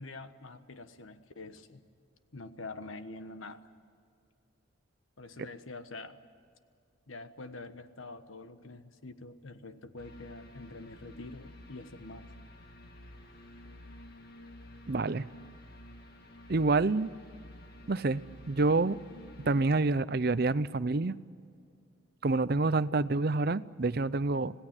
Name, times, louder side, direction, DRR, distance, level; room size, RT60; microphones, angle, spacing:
voice 1, 0.0-1.8 2.3-3.6 5.2-6.2 7.1-12.3, left 3 dB, 85° left, 10 dB, 1.3 m, -46 dB
sound 1, 10.0-19.7, left 1 dB, 50° left, 2.2 m, -51 dB
voice 2, 14.9-15.3 16.5-17.1 17.9-19.0 19.5-21.1 22.2-24.5, right 3 dB, 50° right, 16 dB, 0.6 m, -27 dB
26.5 x 18.0 x 8.9 m, 2.3 s
head